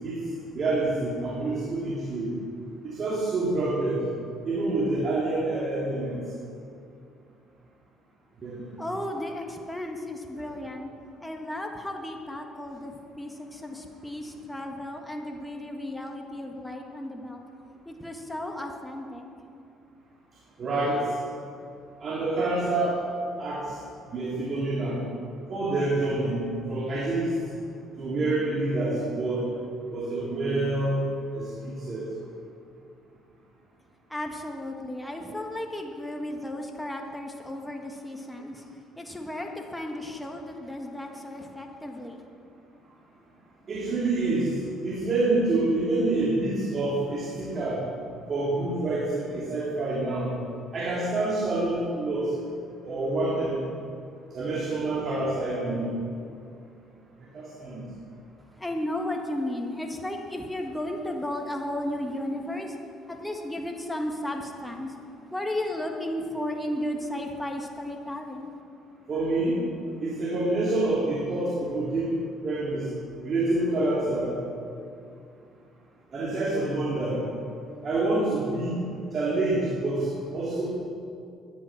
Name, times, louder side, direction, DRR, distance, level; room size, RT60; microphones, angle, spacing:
voice 1, 0.5-2.3 2.8-4.0 4.4-6.2 8.4-8.6 20.6-21.1 22.0-23.0 23.4-23.7 24.1-25.0 25.5-27.3 28.0-29.5 29.9-31.1 31.3-32.1 43.7-44.5 44.8-47.8 48.3-50.3 50.7-52.3 52.8-53.7 54.3-56.0 57.3-57.8 69.1-69.6 70.0-72.1 72.4-72.9 73.2-74.4 76.1-77.2 77.8-78.8 79.1-80.7, right 2 dB, 45° right, -4 dB, 2.8 m, -27 dB
voice 2, 8.8-10.9 11.2-17.4 17.9-19.2 34.1-38.6 39.0-42.2 58.6-62.8 63.1-64.9 65.3-68.5, left 1 dB, 5° left, 2 dB, 1.6 m, -34 dB
13.0 x 10.5 x 6.0 m, 2.5 s
supercardioid pair, 75°, 0 cm